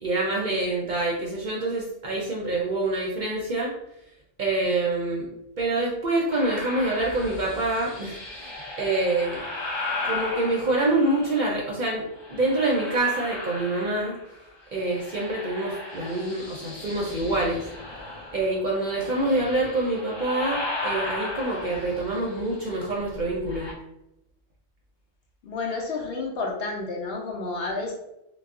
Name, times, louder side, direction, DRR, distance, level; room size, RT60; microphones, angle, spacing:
voice 1, 0.0-3.7 4.4-5.3 5.6-8.5 8.8-9.4 10.0-12.0 12.3-14.2 14.7-17.6 18.3-23.7, right 2 dB, 55° right, -3 dB, 0.5 m, -26 dB
sound 1, 6.3-11.6 12.1-14.4 14.6-23.7, left 2 dB, 35° left, 0.4 m, -36 dB
voice 2, 25.4-27.9, left 3 dB, 65° left, 0 dB, 0.7 m, -30 dB
2.2 x 2.0 x 3.5 m, 0.84 s
omnidirectional pair, 1.2 m